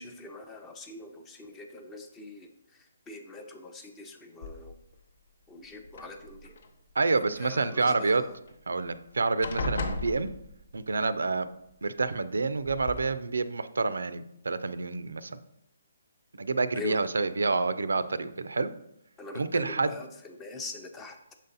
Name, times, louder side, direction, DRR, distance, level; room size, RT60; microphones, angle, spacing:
voice 1, 0.0-4.7 5.5-6.5 7.2-8.4 16.7-17.0 19.2-21.2, left 3 dB, 10° left, 5 dB, 0.5 m, -43 dB
sound 1, 4.4-5.0 5.8-6.7 8.5-8.6 8.9-9.1 9.4-10.9 12.0-12.1 12.6-13.0, left 2 dB, 55° left, 0.7 m, -35 dB
voice 2, 6.9-8.2 8.7-10.3 10.7-11.5 11.8-15.4 16.3-18.7 19.4-20.0, right 3 dB, 85° right, 14 dB, 0.4 m, -28 dB
6.3 x 4.0 x 4.0 m, 0.78 s
hypercardioid pair, 160°, 0 cm